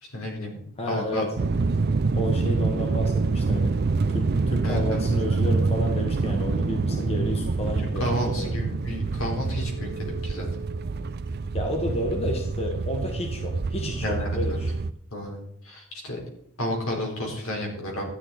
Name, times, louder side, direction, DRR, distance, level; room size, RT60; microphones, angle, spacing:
voice 1, 0.0-1.2 4.6-5.0 6.9-7.0 8.0-10.5 14.0-14.6 15.1-16.2 16.6-18.0, equal, 75° left, 0 dB, 4.1 m, -31 dB
voice 2, 0.8-1.3 2.1-3.7 4.1-8.5 11.5-14.7, left 1 dB, 30° left, 2 dB, 1.4 m, -31 dB
sound 1, 1.4-14.9, right 3 dB, 45° right, 0.5 m, -26 dB
13.0 x 9.8 x 4.2 m, 0.73 s
head